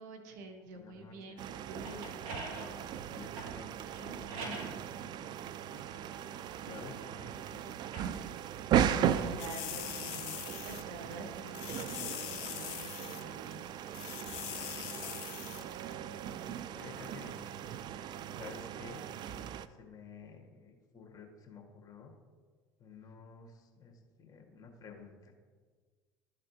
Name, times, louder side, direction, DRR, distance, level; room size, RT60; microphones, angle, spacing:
voice 1, 0.0-2.5 9.0-10.4 10.6-13.6, right 2 dB, 80° right, 5 dB, 1.0 m, -48 dB
voice 2, 0.7-1.4 3.1-6.1 6.6-8.1 14.5-16.1 16.7-17.7 18.3-19.5 19.8-22.1 22.8-25.3, left 5 dB, 40° left, 1 dB, 1.5 m, -52 dB
sound 1, 1.4-19.7, right 9 dB, 50° right, 0.3 m, -37 dB
sound 2, 1.8-4.8 5.5-7.2 7.8-10.1, right 2 dB, 65° right, 1.4 m, -47 dB
sound 3, 9.4-10.8 11.1-11.2 11.5-13.2 13.5-13.6 13.9-15.6 15.9-16.0, left 17 dB, 70° left, 0.4 m, -42 dB
12.5 x 4.2 x 2.7 m, 1.5 s
hypercardioid pair, 80°, 10 cm